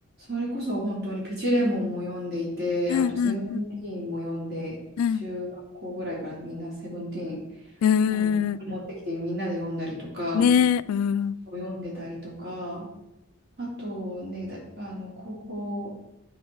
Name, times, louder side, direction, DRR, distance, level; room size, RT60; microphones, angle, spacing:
voice 1, 0.3-4.8 5.2-5.5 5.8-7.4 8.1-8.3 8.6-10.5 11.5-12.9 13.6-15.9, equal, 50° right, 3.2 m, -31 dB
voice 2, 2.9-3.6 5.0-5.2 7.8-8.6 10.3-11.3, left 7 dB, 80° left, 0.3 m, -23 dB
10.5 x 4.6 x 4.6 m
head